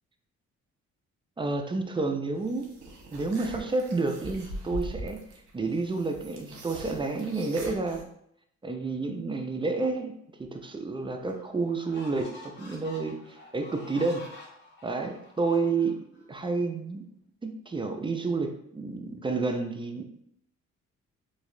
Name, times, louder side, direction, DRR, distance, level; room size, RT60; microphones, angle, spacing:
voice 1, 1.4-2.7 3.1-5.2 5.5-8.0 8.6-10.1 10.4-14.2 14.8-16.0 16.3-17.0 17.4-20.0, right 3 dB, 15° right, 5 dB, 0.4 m, -30 dB
sound 1, 2.4-8.0, right 1 dB, 70° right, 1.0 m, -42 dB
sound 2, 10.6-10.7 11.3-16.2, left 2 dB, 35° left, 1.1 m, -49 dB
4.0 x 2.8 x 2.6 m, 0.73 s
cardioid pair, 90°, 30 cm